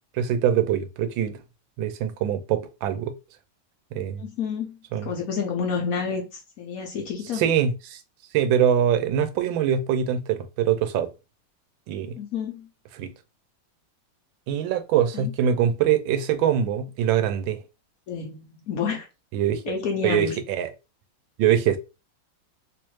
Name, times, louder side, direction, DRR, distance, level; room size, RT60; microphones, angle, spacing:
voice 1, 0.1-1.4 1.8-3.1 3.9-4.2 4.9-5.1 7.3-8.0 8.3-11.1 11.9-12.2 13.0-13.1 14.5-17.6 19.3-19.7 20.0-20.7 21.4-21.8, right 9 dB, 90° right, 1.4 m, -23 dB
voice 2, 4.2-7.4 12.2-12.7 15.1-15.3 18.1-19.1 19.6-20.4, left 6 dB, 65° left, 0.9 m, -29 dB
3.4 x 3.0 x 3.0 m
omnidirectional pair, 2.1 m